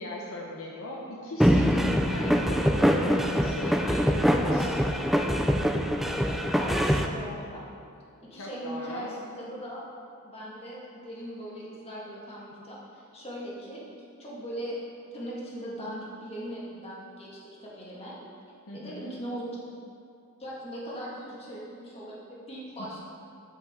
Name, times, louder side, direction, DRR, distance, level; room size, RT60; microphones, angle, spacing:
voice 1, 0.0-4.8 8.3-9.2 18.7-19.2, left 1 dB, 65° left, -1 dB, 0.8 m, -40 dB
sound 1, 1.4-7.1, equal, ahead, 0.3 m, -24 dB
voice 2, 6.0-7.6 8.2-9.8 10.2-13.8 14.2-14.8 15.1-17.3 17.6-18.2 18.7-19.6 20.4-23.0, equal, 25° left, -6 dB, 1.9 m, -39 dB
8.2 x 7.4 x 3.7 m, 2.5 s
head